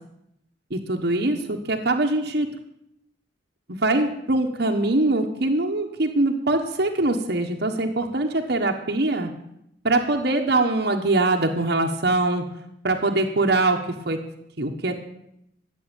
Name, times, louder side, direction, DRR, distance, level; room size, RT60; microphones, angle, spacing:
voice 1, 0.7-2.5 3.7-9.3 9.8-12.5 12.8-14.2 14.6-15.0, right 2 dB, 60° right, 3 dB, 1.3 m, -23 dB
14.0 x 7.8 x 9.1 m, 0.78 s
head